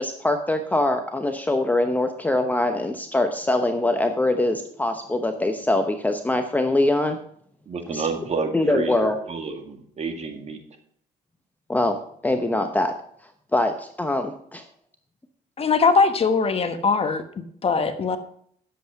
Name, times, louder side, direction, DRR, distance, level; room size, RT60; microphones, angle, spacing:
voice 1, 0.0-7.2 7.9-8.1 8.5-9.2 11.7-12.0 12.2-12.9 13.5-14.6, left 2 dB, 10° left, 6 dB, 0.9 m, -23 dB
voice 2, 7.7-10.6, right 4 dB, 40° right, 4 dB, 2.2 m, -30 dB
voice 3, 15.6-17.2 17.6-18.2, left 4 dB, 35° left, 9 dB, 1.2 m, -20 dB
11.0 x 8.0 x 5.8 m, 0.63 s
cardioid pair, 110°, 17 cm